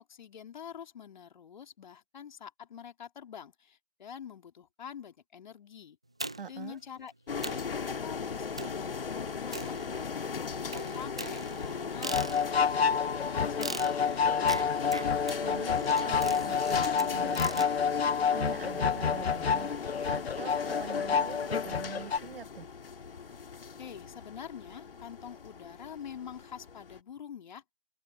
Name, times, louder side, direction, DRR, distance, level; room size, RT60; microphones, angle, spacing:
voice 1, 0.0-6.0 6.5-14.4 23.8-27.6, left 8 dB, 45° left, 3.2 m, -46 dB
sound 1, 6.2-6.7 7.1-7.2 7.4-7.7 8.6-8.9 9.5-10.2 10.7-12.7 13.6-17.7, right 2 dB, 5° right, 0.4 m, -40 dB
voice 2, 6.4-6.8 15.0-22.7, right 6 dB, 60° right, 2.1 m, -44 dB
sound 2, 7.3-27.0, left 5 dB, 60° left, 1.9 m, -39 dB
sound 3, 12.0-22.2, left 6 dB, 80° left, 0.6 m, -29 dB
open air
figure-of-eight pair, 140°, 31 cm